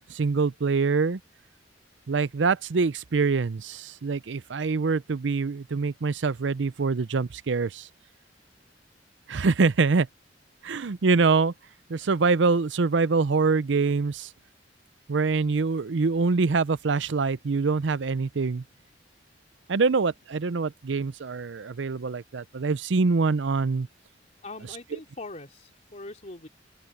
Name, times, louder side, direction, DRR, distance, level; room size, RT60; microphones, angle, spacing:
voice 1, 0.1-1.2 2.1-7.9 9.3-10.1 10.6-11.5 11.9-14.3 15.1-18.6 19.7-23.9, right 4 dB, 70° right, 0.6 m, -24 dB
voice 2, 24.4-26.5, left 2 dB, 40° left, 3.5 m, -41 dB
open air
head